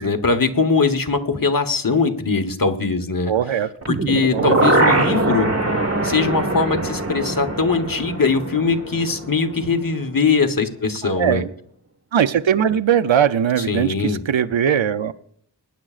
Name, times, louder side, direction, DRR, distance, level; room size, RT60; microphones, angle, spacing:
voice 1, 0.0-3.3 3.9-5.5 6.0-11.4 13.6-14.2, left 4 dB, 50° left, 6 dB, 1.2 m, -21 dB
voice 2, 3.3-3.7 4.3-4.7 11.0-11.5 12.1-15.1, right 8 dB, 90° right, 12 dB, 0.6 m, -20 dB
sound 1, 3.8-9.8 10.2-10.3, right 2 dB, 35° right, 1.5 m, -22 dB
22.0 x 9.9 x 2.5 m, 0.65 s
wide cardioid pair, 55°, 45 cm